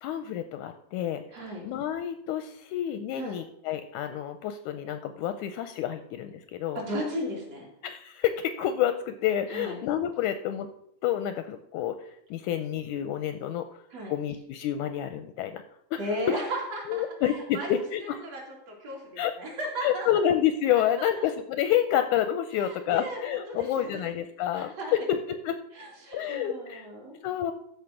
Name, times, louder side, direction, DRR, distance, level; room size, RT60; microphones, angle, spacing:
voice 1, 0.0-1.2 1.6-6.8 7.8-10.7 11.0-12.0 12.3-13.7 14.1-15.6 15.9-16.0 16.3-16.4 16.9-18.2 19.2-19.3 19.8-25.6 26.1-26.9 27.2-27.5, left 10 dB, 80° left, 10 dB, 1.8 m, -28 dB
voice 2, 1.3-1.6 3.1-3.4 6.8-7.7 9.5-9.8 13.9-14.1 16.0-17.7 18.0-18.4 18.7-20.1 21.2-21.3 22.6-24.0 24.5-24.9 25.7-27.2, equal, 50° right, -3 dB, 3.5 m, -35 dB
13.0 x 5.0 x 5.8 m, 0.73 s
omnidirectional pair, 3.8 m